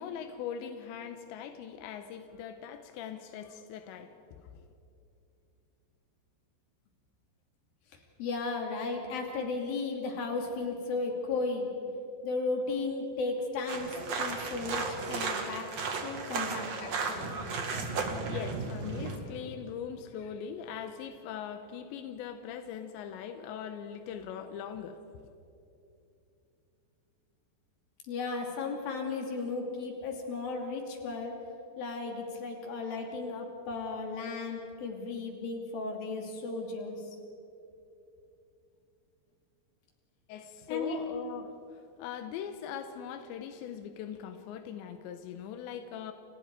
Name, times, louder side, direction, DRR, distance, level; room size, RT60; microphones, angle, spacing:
voice 1, 0.0-4.7 18.3-25.0 40.3-46.1, left 8 dB, 90° left, 8 dB, 3.2 m, -41 dB
voice 2, 8.2-11.7 12.2-15.7 16.0-17.3 28.1-31.4 31.8-37.0 40.7-41.0, left 3 dB, 55° left, 2 dB, 4.4 m, -35 dB
sound 1, 13.7-19.2, right 4 dB, 45° right, 2.5 m, -34 dB
29.5 x 27.5 x 4.8 m, 2.7 s
omnidirectional pair, 5.1 m